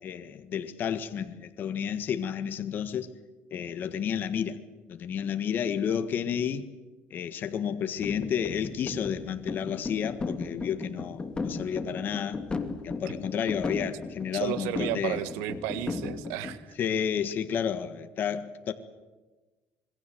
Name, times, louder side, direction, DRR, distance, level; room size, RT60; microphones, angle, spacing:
voice 1, 0.0-3.1 3.5-4.6 4.9-6.7 7.1-12.4 12.8-15.2 16.8-18.7, left 8 dB, 50° left, 10 dB, 1.6 m, -31 dB
sound 1, 8.0-16.5, left 3 dB, 20° left, 2.6 m, -36 dB
voice 2, 14.3-16.7, right 12 dB, 85° right, 13 dB, 1.6 m, -33 dB
26.5 x 22.0 x 7.9 m, 1.2 s
cardioid pair, 110°, 4 cm